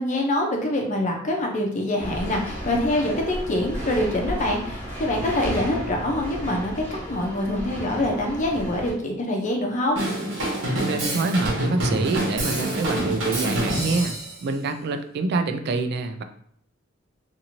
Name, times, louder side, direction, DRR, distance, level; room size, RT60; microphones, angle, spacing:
voice 1, 0.0-10.0, left 1 dB, 40° left, 1 dB, 0.5 m, -25 dB
sound 1, 2.0-8.9, equal, 10° left, 0.9 m, -33 dB
Drum kit / Drum, 10.0-14.4, right 1 dB, 70° right, 1.1 m, -26 dB
voice 2, 10.8-16.2, right 3 dB, 55° right, 8 dB, 0.3 m, -26 dB
2.6 x 2.6 x 2.9 m, 0.64 s
head